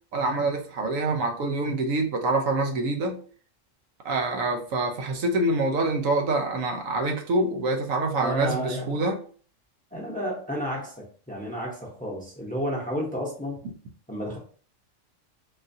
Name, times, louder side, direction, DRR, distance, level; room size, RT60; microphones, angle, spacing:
voice 1, 0.1-3.2 4.0-9.2, right 2 dB, 90° right, 1.1 m, -26 dB
voice 2, 8.2-9.0 9.9-13.7 14.1-14.4, equal, 10° left, 0.6 m, -31 dB
3.8 x 2.5 x 2.6 m
omnidirectional pair, 1.3 m